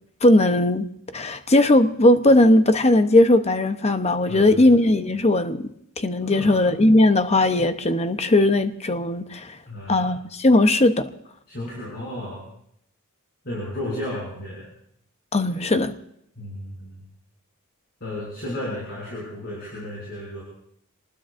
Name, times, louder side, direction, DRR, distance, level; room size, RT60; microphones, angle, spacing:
voice 1, 0.2-0.9 1.1-5.7 6.0-9.6 9.9-11.1 15.3-15.9, left 1 dB, 30° left, 0.8 m, -18 dB
voice 2, 4.3-4.7 6.2-6.6 9.7-10.1 11.5-12.4 13.4-14.7 16.4-17.1 18.0-20.4, left 1 dB, 45° left, 6.7 m, -33 dB
27.5 x 20.0 x 2.6 m
head